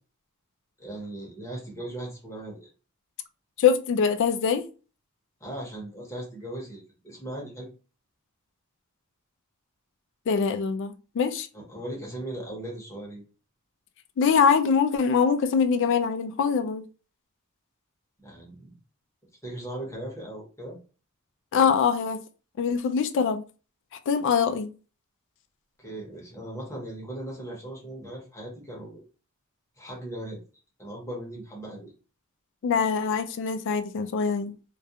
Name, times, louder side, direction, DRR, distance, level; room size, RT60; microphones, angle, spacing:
voice 1, 0.8-2.7 5.4-7.7 11.5-13.2 18.2-18.7 19.4-20.8 25.8-29.0 29.8-30.4 30.8-31.9, right 1 dB, 15° left, 0.8 m, -38 dB
voice 2, 3.6-4.7 10.3-11.5 14.2-16.8 21.5-22.2 22.6-23.4 24.1-24.7 32.6-34.5, left 6 dB, 60° left, 0.3 m, -23 dB
2.3 x 2.2 x 2.7 m
head